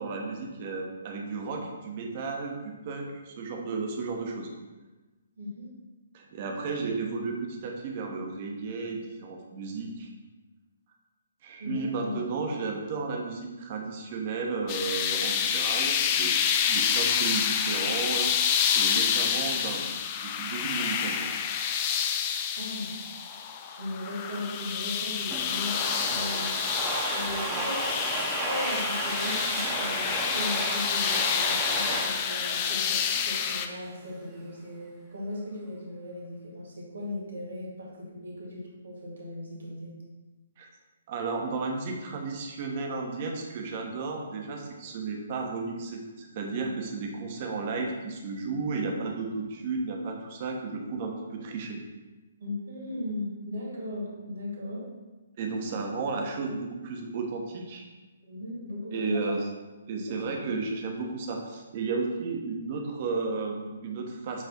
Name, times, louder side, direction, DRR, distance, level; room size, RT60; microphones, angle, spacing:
voice 1, 0.0-4.5 6.1-10.1 11.4-16.3 16.7-19.9 20.2-21.3 40.6-40.7 41.1-51.8 55.4-57.8 58.9-59.4 59.9-64.4, right 4 dB, 40° right, 2 dB, 1.0 m, -33 dB
voice 2, 5.4-5.7 11.6-12.3 22.5-22.9 23.6-25.8 26.1-26.6 27.1-39.9 48.7-48.8 52.4-54.9 58.2-59.4 59.9-60.2 60.4-60.5, left 1 dB, 65° right, -3 dB, 2.0 m, -37 dB
sound 1, 14.7-33.7, left 8 dB, 30° left, 0.4 m, -28 dB
Domestic sounds home sounds, 25.3-33.7, right 1 dB, 10° right, 1.0 m, -33 dB
7.2 x 3.3 x 4.1 m, 1.2 s
figure-of-eight pair, 130°, 0 cm